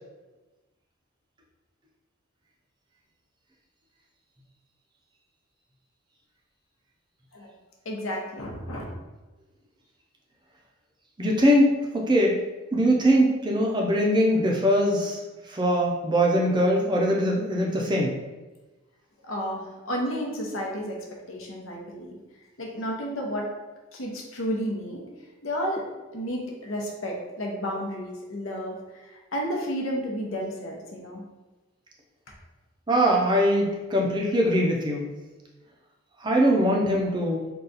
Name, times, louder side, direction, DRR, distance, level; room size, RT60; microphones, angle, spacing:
voice 1, 7.8-8.8 19.2-22.2 22.6-23.5 23.9-25.1 25.4-25.8 26.1-31.2, equal, 70° left, -1 dB, 0.8 m, -32 dB
voice 2, 11.2-12.3 12.7-15.2 15.5-18.1 32.9-35.1 36.2-37.4, equal, 20° right, -2 dB, 0.5 m, -22 dB
3.9 x 2.3 x 4.0 m, 1.2 s
head